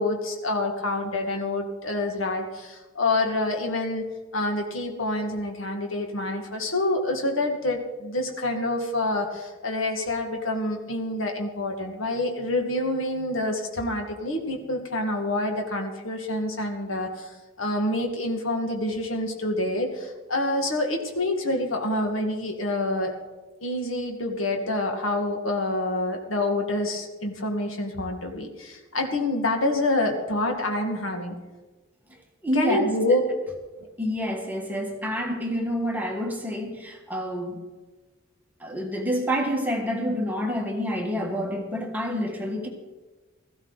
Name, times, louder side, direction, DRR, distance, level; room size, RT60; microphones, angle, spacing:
voice 1, 0.0-4.0 4.3-23.1 23.6-31.3 32.5-33.2, left 2 dB, 80° left, 3 dB, 1.8 m, -27 dB
voice 2, 32.4-32.9 34.0-37.6 38.6-42.7, equal, 10° right, 1 dB, 1.6 m, -28 dB
16.5 x 14.5 x 4.0 m, 1.2 s
head